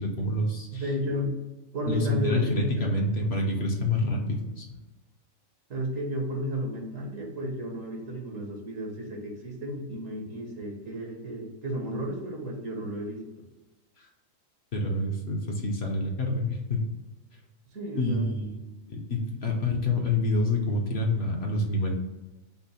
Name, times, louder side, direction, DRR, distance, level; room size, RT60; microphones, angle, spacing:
voice 1, 0.0-0.8 1.9-4.7 14.0-14.1 14.7-16.9 18.0-18.6 18.9-21.9, left 2 dB, 55° left, 1 dB, 0.9 m, -27 dB
voice 2, 0.7-1.3 1.7-2.9 3.2-3.3 5.7-13.2 17.7-18.3, equal, 70° right, 1 dB, 1.4 m, -33 dB
5.8 x 2.1 x 4.1 m, 1.1 s
omnidirectional pair, 1.4 m